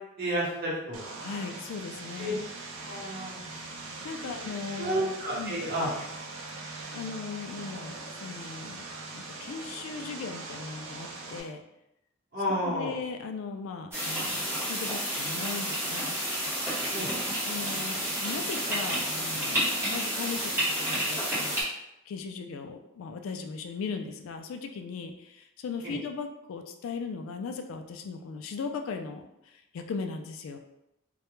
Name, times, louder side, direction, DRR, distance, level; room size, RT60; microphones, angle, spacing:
voice 1, 0.2-1.0 2.2-2.3 2.9-3.3 4.3-4.4 4.8-5.9 12.3-12.9 16.9-17.1 25.8-26.0, equal, 45° right, -7 dB, 0.9 m, -31 dB
Vehicle, 0.9-11.4, right 3 dB, 80° right, 0.4 m, -41 dB
voice 2, 1.2-2.5 3.5-3.8 4.0-5.6 6.5-6.6 6.9-8.9 9.1-11.6 12.6-16.2 17.4-21.6 22.1-30.6, left 5 dB, 80° left, 6 dB, 0.3 m, -38 dB
sound 1, 13.9-21.6, equal, 10° right, 0.7 m, -30 dB
2.2 x 2.1 x 3.0 m, 0.84 s
head